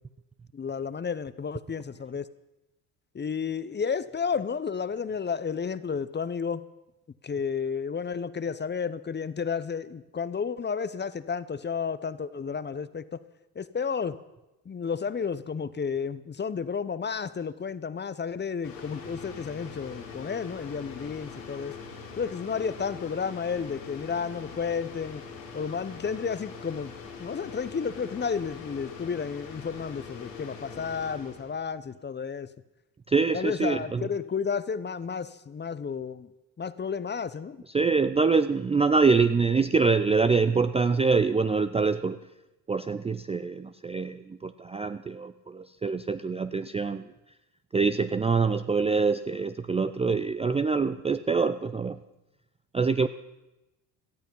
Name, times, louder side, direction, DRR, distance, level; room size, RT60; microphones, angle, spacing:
voice 1, 0.5-2.3 3.1-6.6 7.2-13.2 13.5-14.2 14.7-21.8 22.2-25.2 25.5-26.9 27.2-32.5 33.3-36.3 36.6-37.6, left 6 dB, 20° left, 16 dB, 0.8 m, -32 dB
sound 1, 18.6-31.6, left 5 dB, 85° left, 3.4 m, -43 dB
voice 2, 33.1-34.1 37.7-42.2 42.7-47.0 47.7-52.0 52.7-53.1, right 4 dB, 15° right, 11 dB, 0.5 m, -25 dB
17.5 x 13.5 x 5.6 m, 0.99 s
hypercardioid pair, 65°, 48 cm